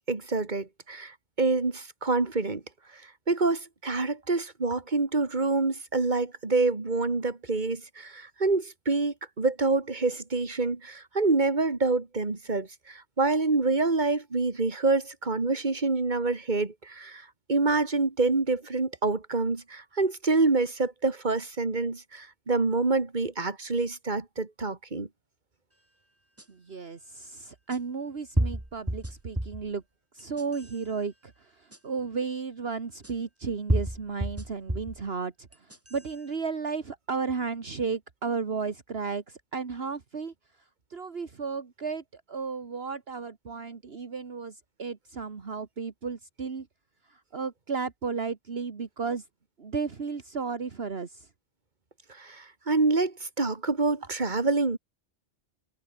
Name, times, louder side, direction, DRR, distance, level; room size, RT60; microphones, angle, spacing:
voice 1, 0.1-2.6 2.9-3.0 3.3-25.1 52.2-54.8, right 3 dB, 40° right, 2.5 m, -27 dB
sound 1, 26.4-26.5 27.7-27.8 28.4-29.7 30.2-30.8 31.7-31.8 33.0-33.1 33.7-35.0 35.5-36.1, right 1 dB, 10° right, 2.1 m, -29 dB
voice 2, 26.5-29.8 30.1-40.3 40.9-46.7 47.1-49.2 49.6-51.3, right 5 dB, 60° right, 1.9 m, -34 dB
omnidirectional pair, 1.2 m